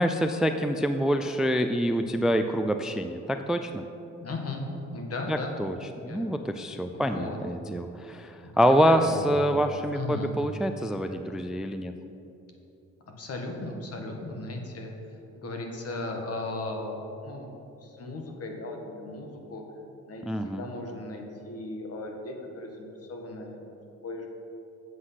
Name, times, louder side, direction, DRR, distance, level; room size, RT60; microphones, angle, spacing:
voice 1, 0.0-3.8 5.3-5.8 6.0-11.9 20.2-20.7, equal, ahead, 7 dB, 0.3 m, -26 dB
voice 2, 4.2-5.5 6.1-6.2 6.9-7.4 8.4-9.2 9.5-9.6 9.9-10.3 13.2-14.9 15.3-17.5 17.8-19.6 20.1-23.6 24.0-24.3, left 2 dB, 50° left, 2 dB, 1.6 m, -36 dB
8.1 x 7.6 x 5.8 m, 2.8 s
cardioid pair, 90°, 30 cm